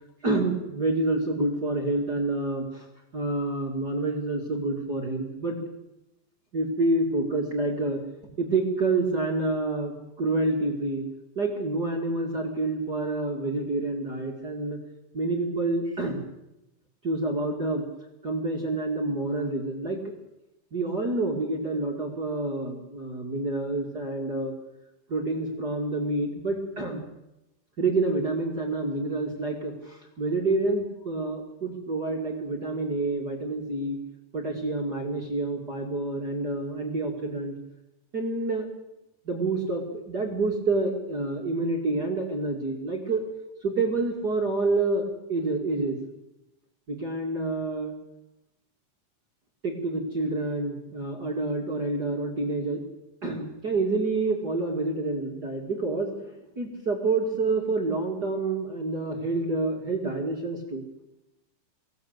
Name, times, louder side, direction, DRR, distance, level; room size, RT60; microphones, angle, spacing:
voice 1, 0.2-2.9 3.1-5.6 6.5-8.0 8.4-11.0 11.4-14.8 15.1-16.2 17.0-17.8 18.2-20.0 20.7-24.5 25.1-27.0 27.8-34.0 34.3-37.5 38.1-38.7 39.2-43.2 43.6-46.0 46.9-47.9 49.6-52.8 53.2-56.3 56.6-60.8, right 2 dB, 30° right, 1 dB, 2.1 m, -28 dB
24.5 x 17.0 x 8.2 m, 0.94 s
omnidirectional pair, 5.4 m